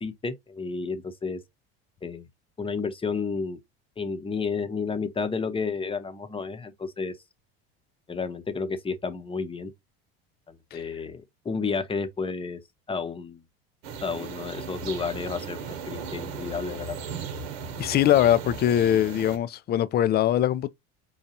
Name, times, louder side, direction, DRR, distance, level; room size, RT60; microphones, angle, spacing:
voice 1, 0.0-1.4 2.0-2.3 2.6-3.6 4.0-7.1 8.1-9.7 10.5-12.6 12.9-13.4 14.0-17.0, left 4 dB, 15° left, 0.8 m, -31 dB
sound 1, 13.8-19.4, right 5 dB, 75° right, 1.1 m, -37 dB
voice 2, 17.8-20.7, left 11 dB, 30° left, 0.4 m, -22 dB
5.4 x 2.3 x 2.7 m
supercardioid pair, 90°, 31 cm